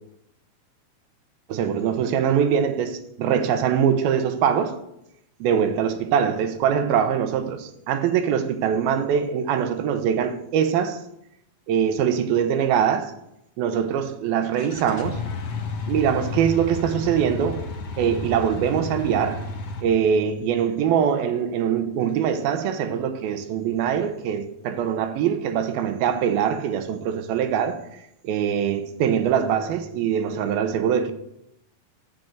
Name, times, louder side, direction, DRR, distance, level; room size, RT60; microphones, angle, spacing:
voice 1, 1.5-4.8 5.4-11.0 11.7-13.1 13.6-15.2 15.9-17.7 18.0-19.5 19.8-27.8 28.2-31.1, right 8 dB, 80° right, 2.8 m, -23 dB
sound 1, 14.5-19.8, left 4 dB, 55° left, 1.7 m, -32 dB
14.0 x 6.1 x 7.9 m
omnidirectional pair, 4.3 m